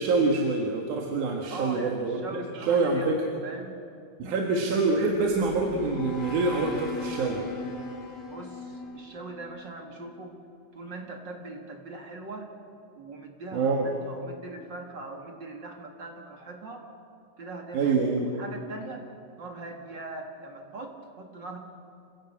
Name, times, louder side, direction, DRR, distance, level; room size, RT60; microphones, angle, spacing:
voice 1, 0.0-3.2 4.2-7.4 13.5-13.9 17.7-18.3, right 3 dB, 65° right, 1 dB, 3.0 m, -26 dB
voice 2, 1.5-3.8 4.4-4.7 8.3-10.4 10.7-12.5 13.0-16.9 17.4-19.0 19.4-21.6, right 2 dB, 40° right, 3 dB, 2.2 m, -41 dB
sound 1, 5.1-10.2, left 3 dB, 60° left, 3.5 m, -39 dB
27.5 x 15.5 x 8.6 m, 2.5 s
omnidirectional pair, 3.9 m